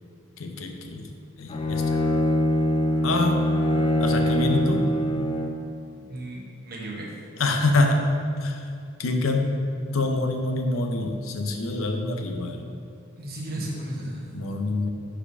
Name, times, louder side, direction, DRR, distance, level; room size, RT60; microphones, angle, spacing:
voice 1, 0.4-1.1 1.4-1.8 3.0-3.4 4.0-4.9 7.4-8.1 8.4-8.7 9.0-9.5 9.9-12.7 14.3-14.9, left 2 dB, 75° left, 4 dB, 0.6 m, -25 dB
Bowed string instrument, 1.5-5.7, left 1 dB, 25° left, 0.4 m, -23 dB
voice 2, 6.1-7.2 13.2-14.3, right 1 dB, 50° right, -3 dB, 1.2 m, -34 dB
5.0 x 4.4 x 5.3 m, 2.4 s
head